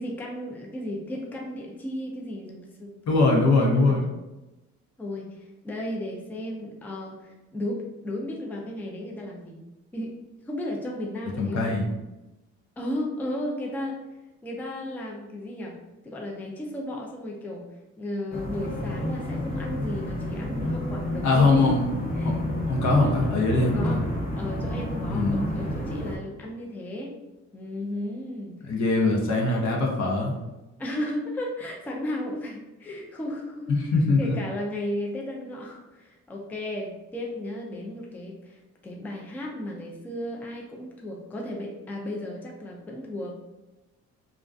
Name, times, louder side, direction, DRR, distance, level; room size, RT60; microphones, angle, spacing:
voice 1, 0.0-2.9 3.5-4.1 5.0-9.6 9.9-10.1 10.4-11.7 12.8-14.0 14.4-15.8 16.0-17.7 18.0-21.8 22.1-22.4 22.9-23.3 23.6-24.0 24.4-27.2 27.5-29.1 30.8-33.8 34.2-43.3, left 1 dB, 5° left, -1 dB, 0.3 m, -34 dB
voice 2, 3.1-4.0 11.4-11.8 21.2-21.8 22.2-22.4 22.7-24.0 25.1-25.4 28.7-30.3 33.7-34.3, left 3 dB, 65° left, 0 dB, 0.7 m, -22 dB
sound 1, 18.3-26.2, left 1 dB, 30° left, 0.7 m, -30 dB
2.4 x 2.1 x 2.5 m, 1.0 s
cardioid pair, 90°, 30 cm